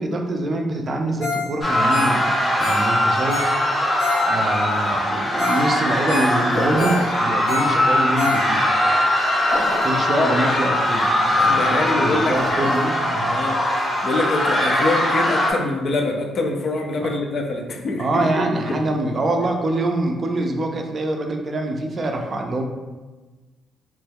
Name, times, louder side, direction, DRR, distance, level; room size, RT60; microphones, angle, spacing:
voice 1, 0.0-2.3 2.6-3.9 4.2-8.7 9.8-13.4 18.0-22.6, right 2 dB, 40° right, 3 dB, 0.4 m, -25 dB
Ringtone, 1.2-1.5 1.7-4.6 5.1-5.2 5.4-5.7 5.9-8.8 9.2-9.3, left 2 dB, 90° left, 0.8 m, -28 dB
sound 1, 1.6-15.5, left 1 dB, 25° left, 0.7 m, -21 dB
sound 2, 6.5-7.2 9.4-10.0 12.2-12.8, left 1 dB, 70° left, 1.4 m, -28 dB
voice 2, 10.1-10.6 11.4-12.7 13.3-18.8, left 2 dB, 55° left, 3 dB, 0.5 m, -25 dB
3.0 x 2.2 x 3.4 m, 1.2 s
cardioid pair, 90°, 0 cm